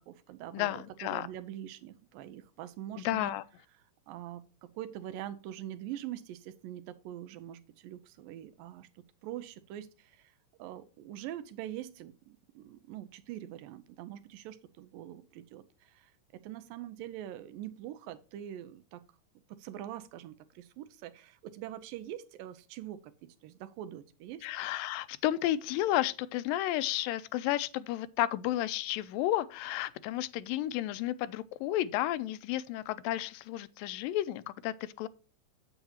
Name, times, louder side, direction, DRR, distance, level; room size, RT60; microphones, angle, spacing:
voice 1, 0.0-3.3 4.1-10.3 10.6-19.0 19.5-24.5, right 12 dB, 85° right, 2.4 m, -44 dB
voice 2, 0.5-1.3 3.0-3.4 24.4-35.1, left 14 dB, 85° left, 2.3 m, -32 dB
9.3 x 8.0 x 2.9 m
omnidirectional pair, 4.0 m